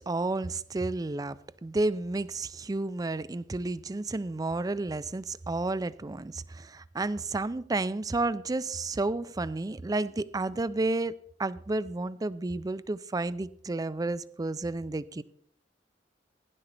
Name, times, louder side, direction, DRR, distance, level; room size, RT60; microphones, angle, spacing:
voice 1, 0.0-1.4 1.6-15.2, right 2 dB, 20° right, 0.4 m, -31 dB
16.0 x 11.0 x 3.4 m
head